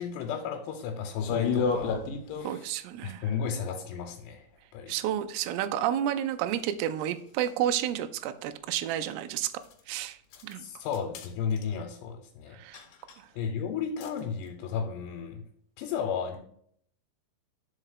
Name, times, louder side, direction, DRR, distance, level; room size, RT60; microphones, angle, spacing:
voice 1, 0.0-2.0 2.3-2.7 3.0-4.5 4.7-4.9 10.3-12.6 13.3-15.4 15.8-16.4, left 7 dB, 85° left, 3 dB, 3.0 m, -33 dB
sound 1, 1.2-2.7 6.5-6.6 7.5-7.6 9.6-9.8 10.3-10.5 10.8-11.3 11.6-11.8 12.7-13.2 14.0-14.2, left 5 dB, 70° left, 2.4 m, -31 dB
voice 2, 2.4-3.2 4.9-9.5 9.9-10.2 10.4-10.7 12.5-12.8 13.2-13.3, right 11 dB, 85° right, 9 dB, 2.6 m, -31 dB
5.5 x 4.9 x 6.5 m, 0.64 s
omnidirectional pair, 4.7 m